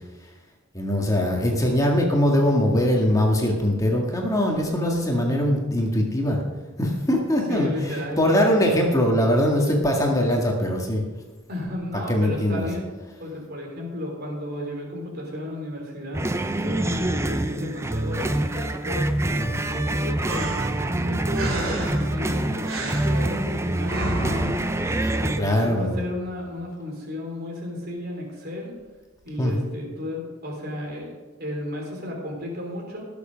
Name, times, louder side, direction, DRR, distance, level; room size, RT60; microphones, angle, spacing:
voice 1, 0.7-6.4 6.8-11.0 12.1-12.7 25.4-26.1 29.4-29.7, equal, 15° left, 0 dB, 1.9 m, -22 dB
voice 2, 7.5-8.2 11.5-12.9 13.2-20.6 21.0-24.7 25.1-28.7 29.2-33.1, left 1 dB, 45° right, -1 dB, 3.5 m, -33 dB
sound 1, 16.1-25.4, right 1 dB, 10° right, 0.5 m, -26 dB
sound 2, 20.3-25.4, right 1 dB, 65° right, 2.6 m, -32 dB
18.0 x 7.2 x 5.2 m, 1.3 s
head